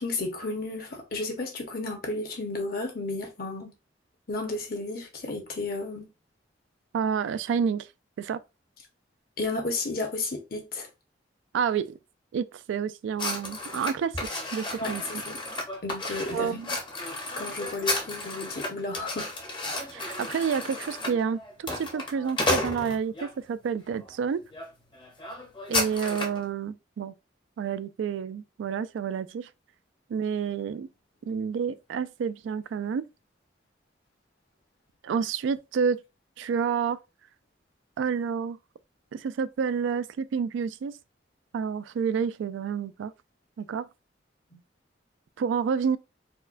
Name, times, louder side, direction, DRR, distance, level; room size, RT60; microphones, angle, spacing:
voice 1, 0.0-3.7 4.3-6.1 9.4-10.9 14.8-15.4 15.8-16.6 17.4-19.3 44.5-44.6, left 2 dB, 55° left, 0.9 m, -33 dB
voice 2, 6.9-7.9 8.2-8.4 11.5-12.0 12.3-15.0 16.3-16.7 19.9-24.4 25.7-27.1 27.6-29.5 30.1-30.9 31.3-33.0 35.0-36.0 36.4-37.0 38.0-38.6 39.1-40.9 41.5-43.1 43.6-43.9 45.4-46.0, right 6 dB, 85° right, 0.3 m, -29 dB
sound 1, 13.2-23.3 23.9-24.1 24.5-24.7 24.9-26.4, left 2 dB, 25° left, 0.7 m, -33 dB
4.3 x 2.1 x 2.5 m
head